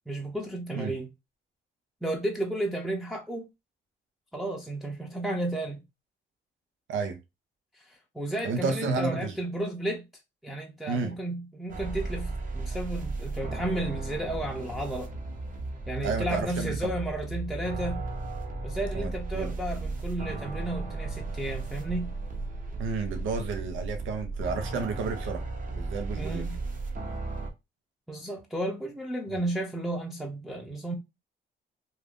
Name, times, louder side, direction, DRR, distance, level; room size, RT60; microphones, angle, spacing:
voice 1, 0.1-1.1 2.0-3.5 4.3-5.8 7.9-10.0 10.4-15.1 15.9-18.1 18.6-22.1 26.2-26.6 28.1-31.0, right 1 dB, ahead, 0.6 m, -33 dB
voice 2, 6.9-7.2 8.4-9.4 10.9-11.2 16.0-16.9 18.9-19.5 22.8-25.4 25.8-26.5, right 4 dB, 85° right, 0.7 m, -31 dB
sound 1, 11.7-27.5, right 3 dB, 45° right, 0.9 m, -35 dB
2.5 x 2.5 x 3.4 m
cardioid pair, 90°, 20 cm